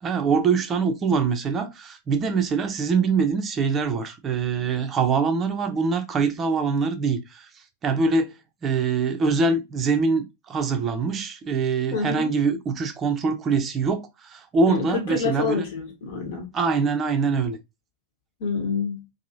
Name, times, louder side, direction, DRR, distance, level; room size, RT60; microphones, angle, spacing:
voice 1, 0.0-7.5 7.8-8.3 8.6-15.6 16.5-17.6, right 4 dB, 25° right, 0.5 m, -24 dB
voice 2, 11.9-12.3 14.7-16.5 18.4-19.0, left 5 dB, 55° left, 1.1 m, -27 dB
2.9 x 2.6 x 2.5 m
figure-of-eight pair, 90°, 0 cm